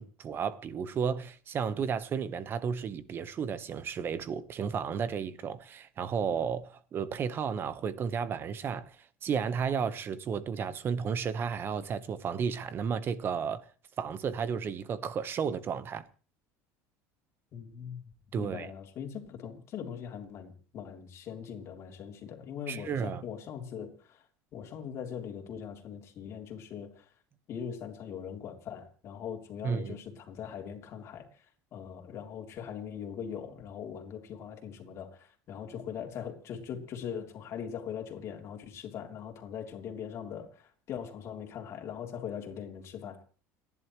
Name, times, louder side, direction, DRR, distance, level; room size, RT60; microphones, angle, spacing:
voice 1, 0.0-9.0 9.2-13.6 14.0-16.1 18.3-18.7 22.7-23.2 29.6-30.0, right 6 dB, 30° right, 1.1 m, -33 dB
voice 2, 17.5-24.2 24.5-27.1 27.5-31.5 31.7-43.2, left 8 dB, 40° left, 3.3 m, -41 dB
29.5 x 11.0 x 3.2 m
cardioid pair, 145°, 7 cm